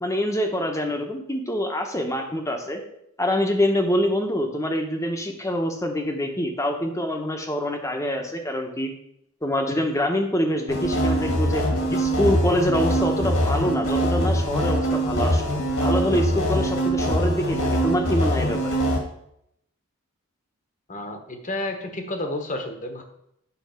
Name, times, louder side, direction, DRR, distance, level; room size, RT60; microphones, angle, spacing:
voice 1, 0.0-2.8 3.2-8.9 9.4-11.6 11.9-15.4 15.8-18.8, equal, 15° left, 4 dB, 1.0 m, -25 dB
sound 1, 10.7-19.0, equal, 65° left, 1.7 m, -23 dB
voice 2, 20.9-23.0, left 1 dB, 35° left, 5 dB, 1.1 m, -31 dB
9.5 x 4.2 x 5.7 m, 0.76 s
head